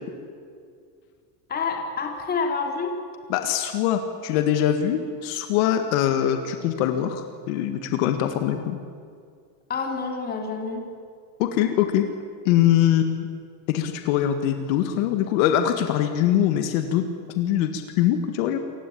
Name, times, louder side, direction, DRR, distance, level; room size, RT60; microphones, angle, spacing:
voice 1, 1.5-3.0 9.7-10.9, left 4 dB, 20° left, 2 dB, 3.3 m, -28 dB
voice 2, 3.3-8.8 11.4-12.1 12.5-13.3 13.7-17.0 17.3-18.6, left 10 dB, 65° left, 7 dB, 1.9 m, -23 dB
28.0 x 16.0 x 8.7 m, 2.2 s
cardioid pair, 165°, 44 cm